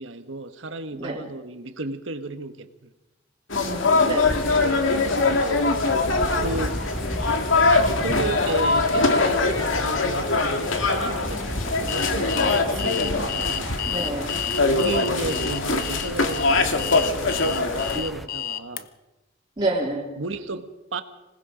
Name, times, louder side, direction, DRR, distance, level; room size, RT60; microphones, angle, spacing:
voice 1, 0.0-2.9 4.4-4.8 5.3-5.6 6.4-6.9 7.7-13.8 14.7-18.9 20.2-21.0, right 2 dB, 75° right, 1.4 m, -33 dB
sound 1, 3.5-18.0, left 3 dB, 85° left, 2.2 m, -23 dB
voice 2, 3.5-4.4 13.9-14.3 19.6-20.1, right 2 dB, 25° right, 3.0 m, -28 dB
sound 2, 4.2-18.3, equal, ahead, 1.1 m, -35 dB
Alarm, 11.9-18.8, left 10 dB, 50° left, 0.9 m, -31 dB
26.0 x 19.5 x 5.2 m
head